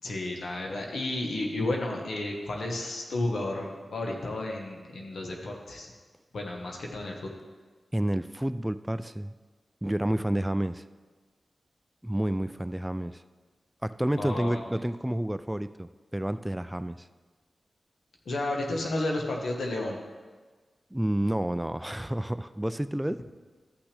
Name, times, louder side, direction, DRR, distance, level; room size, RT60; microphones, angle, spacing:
voice 1, 0.0-5.9 6.3-7.3 14.2-14.6 18.2-20.0, left 2 dB, 85° left, 0 dB, 1.2 m, -32 dB
voice 2, 7.9-9.4 9.8-10.8 12.0-13.2 13.8-17.1 20.9-23.2, right 1 dB, 10° right, 12 dB, 0.3 m, -30 dB
13.5 x 6.0 x 3.3 m, 1.4 s
cardioid pair, 55°, 0 cm